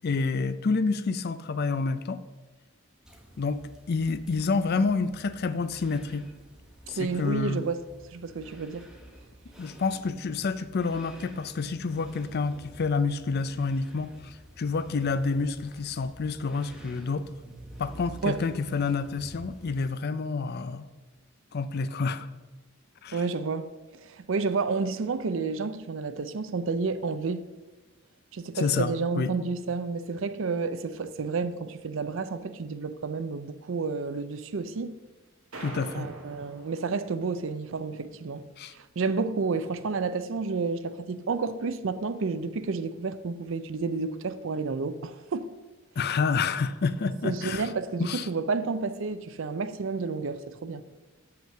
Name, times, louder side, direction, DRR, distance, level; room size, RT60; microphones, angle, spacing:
voice 1, 0.0-2.2 3.4-3.6 3.9-6.3 6.9-7.6 9.6-17.3 17.8-20.9 21.5-22.3 23.0-23.2 28.5-29.3 35.6-36.1 38.6-38.7 46.0-47.7 48.0-48.3, left 4 dB, 50° left, 0.5 m, -28 dB
sound 1, 3.0-19.9, equal, 5° right, 1.2 m, -50 dB
voice 2, 6.9-7.8 8.1-8.9 18.2-18.4 23.1-23.7 24.0-27.4 28.3-35.0 35.9-38.5 38.7-45.5 47.2-50.8, right 4 dB, 70° right, 0.5 m, -30 dB
sound 2, 35.5-37.5, right 2 dB, 85° right, 2.1 m, -43 dB
7.5 x 5.8 x 6.4 m
head